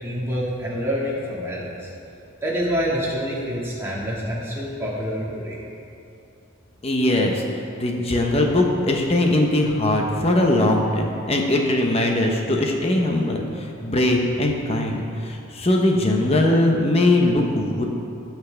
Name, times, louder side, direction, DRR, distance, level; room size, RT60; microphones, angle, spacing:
voice 1, 0.0-1.9 2.4-5.6, equal, 10° right, -7 dB, 1.9 m, -27 dB
voice 2, 6.8-7.4 7.8-17.8, left 1 dB, 30° left, 1 dB, 0.8 m, -20 dB
17.5 x 5.9 x 3.4 m, 2.7 s
head